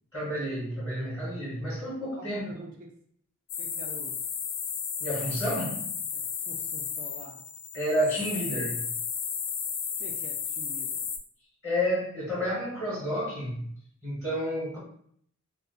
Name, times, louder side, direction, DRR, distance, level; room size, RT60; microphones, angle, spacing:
voice 1, 0.1-2.5 5.0-5.9 7.7-8.9 11.6-13.6 14.0-14.8, equal, 10° left, -10 dB, 1.2 m, -30 dB
voice 2, 2.1-2.8 3.6-4.2 6.1-7.4 10.0-11.1, right 1 dB, 35° right, 0 dB, 0.4 m, -46 dB
sound 1, 3.5-11.2, left 7 dB, 65° left, 0.4 m, -34 dB
2.4 x 2.3 x 3.7 m, 0.65 s
head